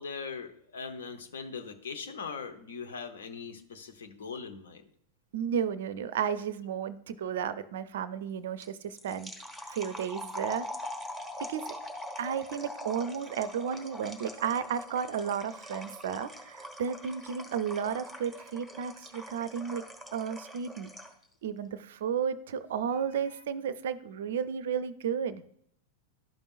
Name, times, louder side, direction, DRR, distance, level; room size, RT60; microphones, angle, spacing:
voice 1, 0.0-4.8, left 5 dB, 65° left, 7 dB, 0.8 m, -40 dB
voice 2, 5.3-9.3 9.7-10.7 11.5-11.7 12.2-19.8 20.1-20.9 21.4-25.4, right 7 dB, 60° right, 15 dB, 0.4 m, -33 dB
sound 1, 8.6-21.2, left 1 dB, 5° left, 1.1 m, -43 dB
12.0 x 5.3 x 2.4 m, 0.70 s
figure-of-eight pair, 90°, 0 cm